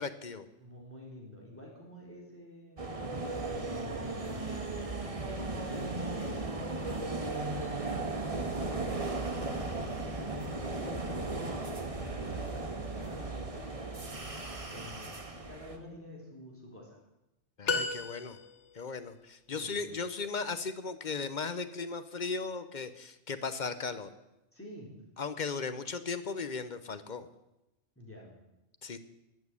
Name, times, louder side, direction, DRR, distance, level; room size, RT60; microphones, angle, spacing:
voice 1, 0.0-0.5 17.6-18.4 18.7-24.1 25.2-27.3 28.8-29.0, left 4 dB, 40° left, 11 dB, 0.9 m, -37 dB
voice 2, 0.6-3.0 3.4-4.4 4.9-11.7 12.2-14.3 14.7-17.0 19.5-20.0 24.5-24.9 28.0-28.3, equal, 10° left, -3 dB, 4.2 m, -49 dB
sound 1, 2.8-15.8, right 2 dB, 30° right, 1.4 m, -36 dB
sound 2, 17.7-18.8, left 4 dB, 65° left, 1.4 m, -33 dB
12.5 x 8.6 x 9.6 m, 0.94 s
omnidirectional pair, 1.3 m